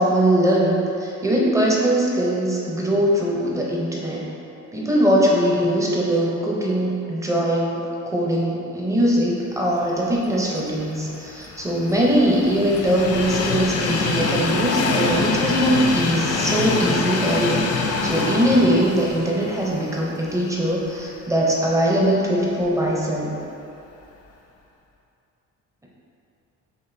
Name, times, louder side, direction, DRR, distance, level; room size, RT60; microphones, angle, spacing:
voice 1, 0.0-4.3 4.7-17.7 18.0-23.3, equal, 10° right, -4 dB, 0.5 m, -21 dB
Train, 10.9-21.0 21.4-21.5 22.6-22.7, left 3 dB, 55° left, 0.4 m, -25 dB
6.3 x 2.5 x 2.5 m, 2.7 s
cardioid pair, 150°, 30 cm